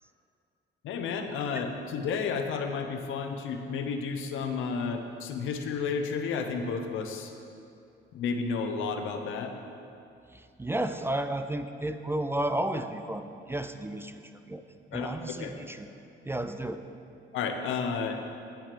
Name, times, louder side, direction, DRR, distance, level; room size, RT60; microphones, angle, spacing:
voice 1, 0.8-7.3 8.1-9.6 14.9-15.6 17.3-18.2, left 5 dB, 85° left, 5 dB, 0.8 m, -32 dB
voice 2, 10.6-14.2 14.5-14.6 14.9-15.9 16.3-16.8, right 1 dB, 10° right, 8 dB, 0.4 m, -32 dB
9.2 x 7.3 x 5.1 m, 2.6 s
cardioid pair, 90°, 20 cm